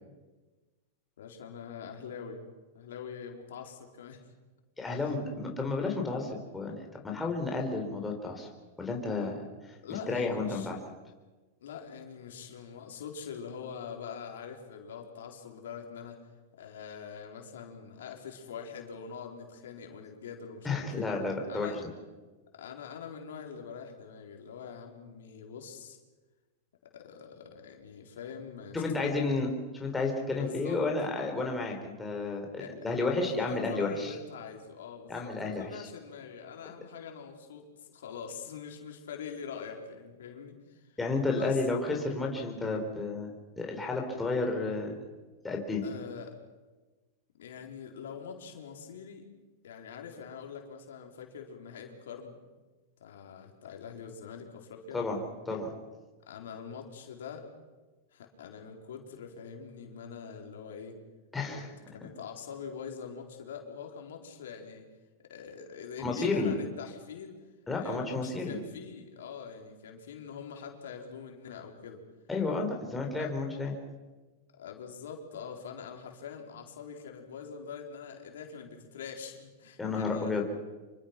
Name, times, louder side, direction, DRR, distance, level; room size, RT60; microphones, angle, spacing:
voice 1, 1.2-2.4 2.7-4.2 9.8-10.7 11.6-16.2 16.6-21.1 21.5-21.8 22.5-26.0 26.9-29.3 30.3-30.8 32.6-41.0 41.3-41.6 45.8-46.3 47.4-49.3 49.6-52.3 53.0-55.0 56.3-57.5 58.1-61.0 61.5-61.6 61.9-64.9 65.3-67.4 67.8-72.0 73.2-73.3 74.5-80.4, left 6 dB, 80° left, 2 dB, 4.2 m, -44 dB
voice 2, 4.8-8.5 8.8-9.5 10.1-10.8 20.6-21.8 28.7-32.5 32.8-34.1 35.1-35.9 41.0-43.3 43.6-44.9 45.4-45.8 54.9-55.2 55.5-55.7 61.3-61.7 66.0-66.5 67.7-68.6 72.3-73.7 79.8-80.4, left 3 dB, 10° left, 0 dB, 4.5 m, -31 dB
26.5 x 24.0 x 6.0 m, 1.2 s
hypercardioid pair, 135°, 0 cm